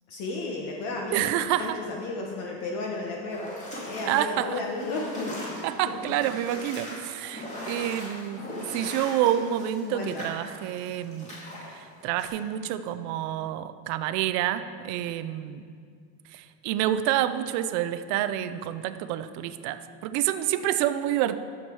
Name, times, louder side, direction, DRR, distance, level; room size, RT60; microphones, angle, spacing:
voice 1, 0.1-1.3 1.6-3.5 3.8-6.3 8.5-8.8 9.8-10.3, left 3 dB, 50° left, 0 dB, 1.1 m, -34 dB
voice 2, 1.1-1.8 4.1-4.6 5.6-11.3 11.7-15.6 16.3-21.4, right 12 dB, 45° right, 11 dB, 0.4 m, -28 dB
sound 1, 3.3-11.7 12.2-12.3, left 1 dB, 15° left, 2.3 m, -39 dB
11.0 x 7.3 x 4.6 m, 2.2 s
cardioid pair, 160°, 41 cm